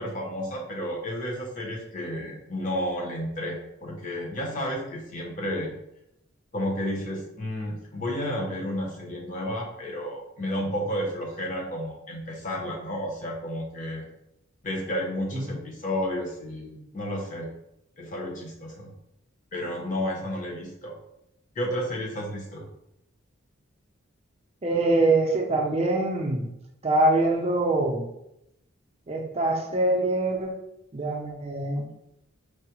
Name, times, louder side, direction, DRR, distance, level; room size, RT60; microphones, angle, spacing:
voice 1, 0.0-5.7 6.5-14.0 14.6-17.5 18.0-18.9 19.5-20.9 21.6-22.7, equal, 40° left, -1 dB, 0.7 m, -31 dB
voice 2, 24.6-26.5 26.8-28.1 29.1-30.5 30.9-31.9, right 2 dB, 30° right, 1 dB, 0.5 m, -24 dB
4.6 x 2.0 x 2.9 m, 0.83 s
head